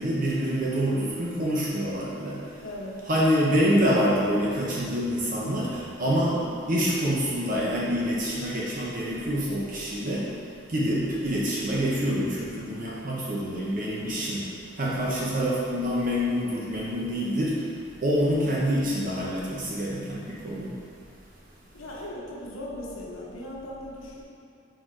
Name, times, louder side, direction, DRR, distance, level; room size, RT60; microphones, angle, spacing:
voice 1, 0.0-2.4 3.1-6.4 6.7-10.2 10.7-14.4 14.8-17.6 18.0-20.7, equal, 40° right, -6 dB, 0.7 m, -26 dB
voice 2, 2.5-3.0 3.4-3.7 6.1-6.6 21.7-24.2, left 1 dB, 85° left, -4 dB, 1.1 m, -39 dB
4.6 x 4.4 x 4.6 m, 2.4 s
head